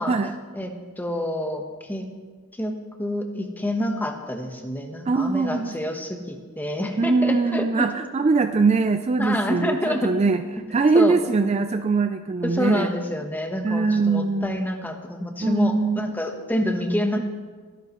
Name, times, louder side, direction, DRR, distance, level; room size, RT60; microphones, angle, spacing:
voice 1, 0.0-0.4 5.1-5.8 7.0-10.4 10.7-12.9 13.6-14.6 15.4-16.1 17.1-17.2, right 4 dB, 30° right, 8 dB, 0.3 m, -22 dB
voice 2, 0.5-1.6 1.9-2.1 2.6-7.9 9.2-10.1 10.9-11.1 12.4-17.2, left 1 dB, 10° left, 4 dB, 1.0 m, -27 dB
22.0 x 11.0 x 3.0 m, 1.5 s
head